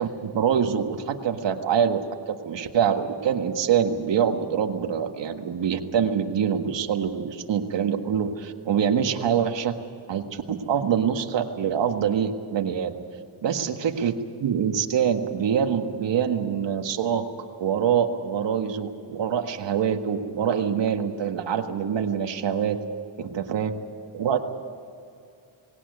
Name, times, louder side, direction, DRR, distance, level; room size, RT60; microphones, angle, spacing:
voice 1, 0.0-2.0 2.3-9.7 10.1-12.9 13.4-17.3 17.6-22.8 23.2-23.7 24.1-24.4, right 8 dB, 60° right, 5 dB, 1.7 m, -25 dB
19.0 x 17.5 x 9.5 m, 2.4 s
cardioid pair, 90°, 48 cm